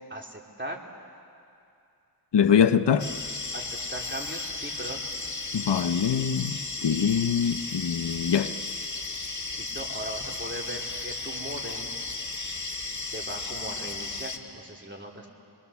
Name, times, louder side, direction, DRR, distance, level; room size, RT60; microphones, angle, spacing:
voice 1, 0.1-0.9 3.5-5.1 9.6-11.9 13.0-15.3, right 1 dB, 30° right, 3.1 m, -39 dB
voice 2, 2.3-3.1 5.5-8.5, left 7 dB, 90° left, 0.7 m, -23 dB
sound 1, 3.0-14.4, left 3 dB, 45° left, 1.9 m, -35 dB
26.0 x 22.5 x 7.0 m
wide cardioid pair, 45°, 40 cm